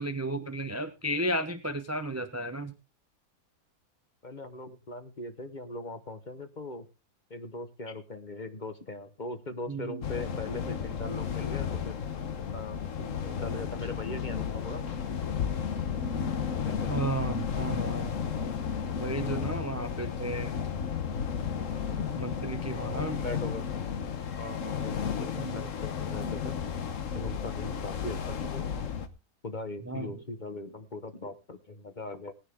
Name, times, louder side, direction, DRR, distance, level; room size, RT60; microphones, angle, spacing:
voice 1, 0.0-2.7 9.7-10.0 16.9-18.2 19.0-20.7 22.2-23.2 25.4-25.7 27.0-27.3 29.9-30.1, right 1 dB, 15° right, 10 dB, 0.5 m, -34 dB
voice 2, 4.2-6.9 7.3-12.0 12.5-14.9 16.6-16.9 22.7-23.7 24.4-26.6 27.1-28.7 29.4-32.3, left 2 dB, 35° left, 9 dB, 1.1 m, -40 dB
sound 1, 10.0-29.1, left 7 dB, 55° left, 1.3 m, -33 dB
17.5 x 10.0 x 3.6 m, 0.29 s
omnidirectional pair, 1.7 m